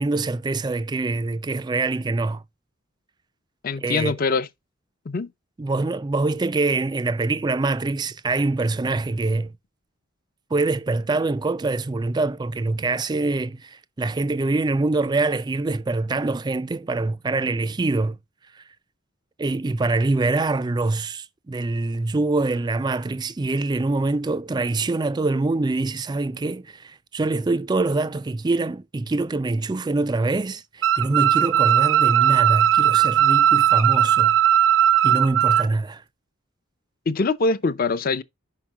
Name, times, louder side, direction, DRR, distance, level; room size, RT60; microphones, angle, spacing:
voice 1, 0.0-2.4 3.8-4.2 5.6-9.5 10.5-18.2 18.6-18.7 19.4-34.4 35.0-36.0, right 3 dB, 20° right, 0.3 m, -24 dB
voice 2, 3.6-4.5 5.1-5.3 37.1-38.2, left 3 dB, 45° left, 0.5 m, -23 dB
sound 1, 30.8-35.7, right 10 dB, 65° right, 0.5 m, -18 dB
5.8 x 5.5 x 4.7 m
head